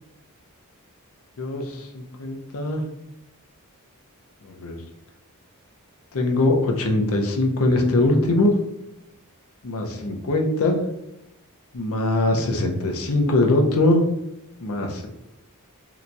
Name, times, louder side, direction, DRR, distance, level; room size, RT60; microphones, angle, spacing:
voice 1, 1.4-2.8 4.4-4.8 6.1-8.6 9.6-10.8 11.7-14.0 14.6-15.1, left 2 dB, 70° left, 2 dB, 0.6 m, -22 dB
2.9 x 2.2 x 3.8 m, 0.87 s
head